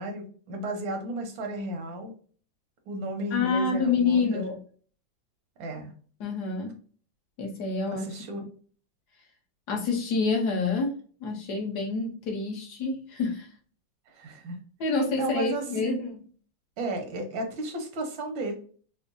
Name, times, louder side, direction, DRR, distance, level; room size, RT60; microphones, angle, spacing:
voice 1, 0.0-2.1 2.9-4.4 5.6-5.9 7.9-8.4 14.1-14.6 15.2-16.0 16.8-18.5, right 1 dB, 80° right, 4 dB, 1.7 m, -33 dB
voice 2, 3.3-4.6 6.2-6.8 7.4-8.1 9.7-13.5 14.8-16.2, left 4 dB, 65° left, 1 dB, 1.3 m, -27 dB
4.9 x 2.0 x 2.5 m, 0.43 s
omnidirectional pair, 2.0 m